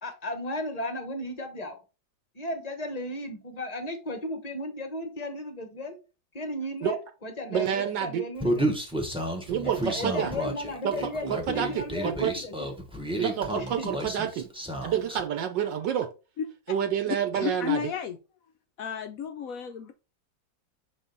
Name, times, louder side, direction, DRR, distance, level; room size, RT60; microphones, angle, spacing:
voice 1, 0.0-1.8 2.3-6.0 6.3-8.7 9.6-12.7 13.5-14.0, left 1 dB, 35° left, 6 dB, 0.7 m, -35 dB
voice 2, 7.5-8.2 9.5-10.3 10.8-10.9 11.3-12.3 13.2-14.5 14.8-16.1 16.7-17.9, right 9 dB, 75° right, 7 dB, 1.4 m, -28 dB
Human voice, 8.4-15.2, right 1 dB, 5° right, 0.7 m, -31 dB
voice 3, 17.3-18.2 18.8-19.9, left 8 dB, 75° left, 6 dB, 0.8 m, -32 dB
6.4 x 3.7 x 3.9 m, 0.31 s
omnidirectional pair, 2.0 m